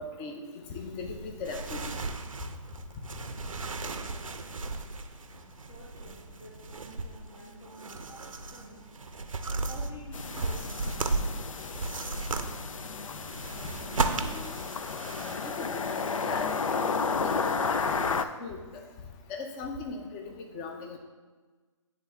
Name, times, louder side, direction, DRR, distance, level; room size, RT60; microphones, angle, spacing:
voice 1, 0.0-1.9 14.1-14.6 15.3-18.6 19.3-21.0, left 4 dB, 25° left, 3 dB, 0.7 m, -39 dB
sound 1, 0.7-15.4, right 3 dB, 85° right, 0.6 m, -36 dB
voice 2, 5.7-8.9 9.7-11.1, left 1 dB, 50° left, -7 dB, 1.5 m, -50 dB
sound 2, 10.1-18.2, left 5 dB, 80° left, 0.4 m, -32 dB
9.7 x 3.5 x 3.5 m, 1.3 s
figure-of-eight pair, 135°, 17 cm